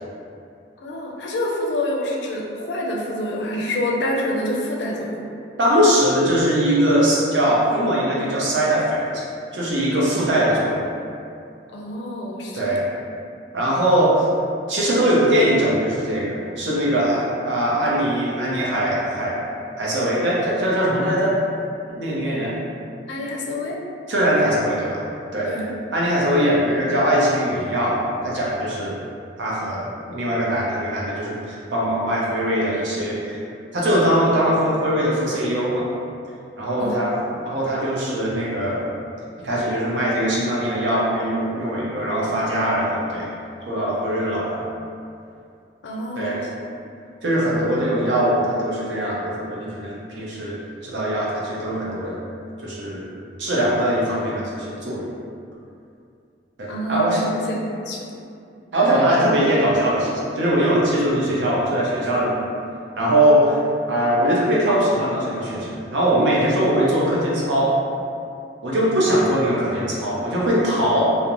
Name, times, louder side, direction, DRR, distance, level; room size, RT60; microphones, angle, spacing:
voice 1, 0.8-5.3 11.7-12.8 23.1-23.8 25.5-25.7 36.8-37.0 45.8-46.5 56.7-58.1, left 1 dB, 70° left, -2 dB, 0.4 m, -27 dB
voice 2, 5.6-9.2 9.5-10.8 12.5-12.8 13.5-14.3 14.7-19.4 19.8-21.3 21.9-22.6 24.1-25.0 25.3-25.5 25.9-28.9 29.4-33.4 33.7-35.8 36.6-38.9 39.4-43.3 43.6-44.6 46.1-46.4 47.2-50.6 50.8-52.2 52.6-53.0 53.4-55.1 56.6-57.2 58.7-62.4 63.0-63.6 63.9-67.8 68.6-71.0, right 1 dB, 85° right, -6 dB, 0.6 m, -21 dB
2.4 x 2.1 x 2.9 m, 2.5 s
head